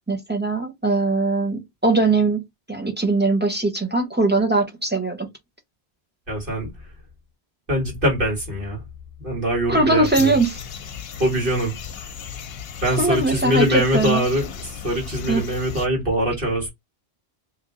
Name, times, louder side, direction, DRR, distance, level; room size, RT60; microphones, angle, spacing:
voice 1, 0.1-2.4 2.7-5.3 9.7-10.6 13.0-14.2 15.3-15.4, right 2 dB, 10° right, 0.8 m, -21 dB
voice 2, 6.3-6.7 7.7-8.8 9.2-10.4 11.2-11.8 12.8-16.7, equal, 55° right, 2.0 m, -23 dB
sound 1, 10.0-15.9, left 8 dB, 70° left, 0.8 m, -36 dB
3.1 x 2.6 x 3.7 m
omnidirectional pair, 1.1 m